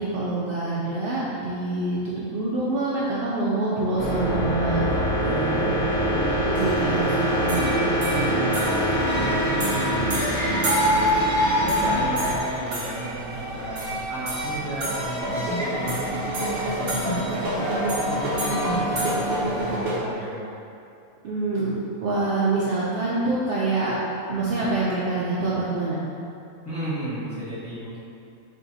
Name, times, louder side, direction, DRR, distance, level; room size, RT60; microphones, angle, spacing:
voice 1, 0.0-4.9 5.2-5.7 6.3-8.2 21.2-21.7 22.0-23.9 24.3-26.0, right 2 dB, 80° right, -7 dB, 0.5 m, -26 dB
sound 1, 4.0-12.4, equal, 55° left, 0.8 m, -24 dB
voice 2, 4.7-5.7 9.1-10.6 10.9-11.2 11.5-16.1 16.7-20.4 26.6-28.0, right 1 dB, 10° left, -12 dB, 1.2 m, -33 dB
sound 2, 6.6-19.9, equal, 50° right, 0.9 m, -27 dB
3.8 x 2.6 x 4.0 m, 2.6 s
omnidirectional pair, 1.5 m